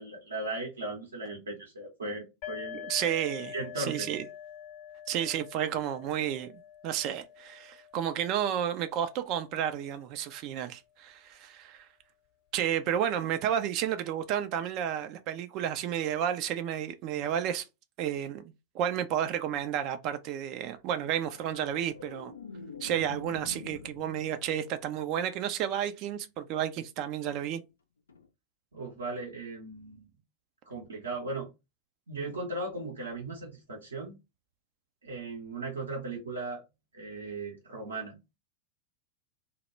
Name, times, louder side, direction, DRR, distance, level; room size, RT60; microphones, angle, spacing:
voice 1, 0.0-2.8 3.5-4.1 28.7-30.1 30.7-31.5 32.1-34.1 35.0-36.6 36.9-38.2, right 2 dB, 70° right, 0.7 m, -37 dB
sound 1, 2.4-9.9, left 10 dB, 45° left, 0.7 m, -46 dB
voice 2, 2.7-4.2 5.1-11.9 12.5-17.7 18.0-18.4 18.7-22.3 22.8-27.6, right 10 dB, 40° right, 0.3 m, -31 dB
sound 2, 21.2-25.7 28.1-28.3, left 4 dB, 70° left, 0.3 m, -47 dB
2.1 x 2.0 x 3.1 m
figure-of-eight pair, 90°, 0 cm